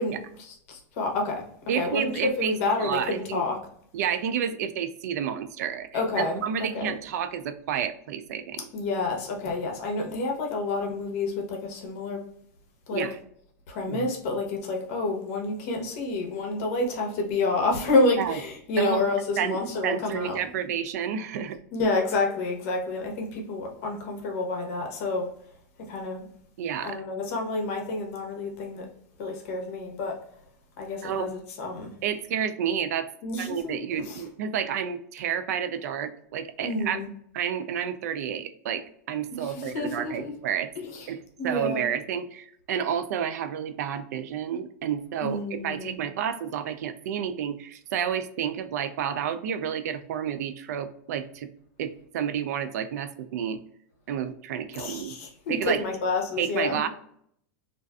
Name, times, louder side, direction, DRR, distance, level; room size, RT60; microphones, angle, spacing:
voice 1, 0.0-1.4 1.7-3.6 5.9-6.9 8.7-12.2 12.9-13.1 13.7-20.4 21.7-25.3 25.8-26.3 26.8-28.9 29.2-30.2 30.8-31.9 33.2-34.3 36.6-37.1 39.3-40.3 40.8-41.1 41.4-41.9 45.2-46.0 54.7-56.8, left 3 dB, 60° left, 2 dB, 0.8 m, -29 dB
voice 2, 1.7-3.4 3.9-5.9 6.2-8.6 12.9-13.2 13.9-14.1 18.2-18.4 18.8-19.0 19.4-21.6 26.6-27.0 31.0-31.3 32.0-33.1 33.4-37.0 37.3-40.7 41.1-51.5 51.8-53.6 54.1-55.2 55.5-55.8 56.4-56.9, right 8 dB, 85° right, 10 dB, 0.4 m, -30 dB
2.5 x 2.4 x 2.2 m, 0.67 s
supercardioid pair, 155°, 9 cm